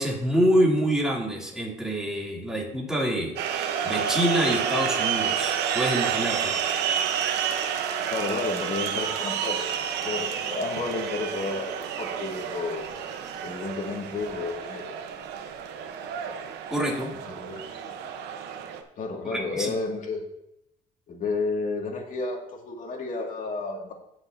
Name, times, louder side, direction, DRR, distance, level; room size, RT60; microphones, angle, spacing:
voice 1, 0.0-6.5 16.7-17.1 19.3-19.7, equal, 5° right, -3 dB, 2.9 m, -26 dB
sound 1, 3.4-18.8, right 8 dB, 85° right, 1.0 m, -30 dB
voice 2, 8.1-9.7 10.0-12.9 13.4-14.9 17.3-17.6 19.0-20.2 21.1-23.9, left 3 dB, 50° left, 1 dB, 2.2 m, -31 dB
17.0 x 6.0 x 2.7 m, 0.83 s
cardioid pair, 110°, 17 cm